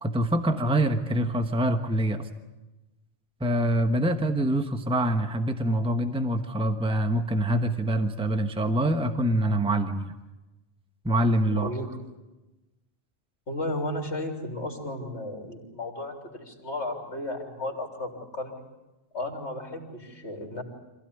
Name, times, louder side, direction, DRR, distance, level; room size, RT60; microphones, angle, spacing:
voice 1, 0.0-2.3 3.4-10.1 11.0-11.7, right 1 dB, 5° right, 7 dB, 1.1 m, -25 dB
voice 2, 13.5-18.6 19.1-20.6, left 1 dB, 90° left, 1 dB, 3.7 m, -34 dB
26.5 x 16.0 x 9.9 m, 1.1 s
omnidirectional pair, 1.1 m